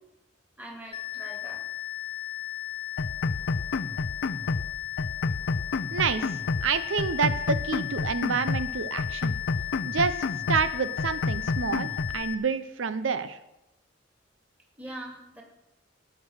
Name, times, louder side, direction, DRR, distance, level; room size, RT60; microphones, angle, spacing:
voice 1, 0.6-1.6 14.7-15.4, right 1 dB, 10° right, 0 dB, 2.2 m, -42 dB
sound 1, 0.9-12.3, left 15 dB, 30° left, 0.8 m, -35 dB
sound 2, 3.0-4.7 5.0-6.7 7.0-8.7 9.0-10.7 11.0-12.2, left 3 dB, 75° left, 0.5 m, -30 dB
voice 2, 5.9-6.2 6.6-9.3 9.9-10.2 10.5-13.4, right 5 dB, 90° right, 12 dB, 0.7 m, -28 dB
17.5 x 6.2 x 6.4 m, 0.92 s
head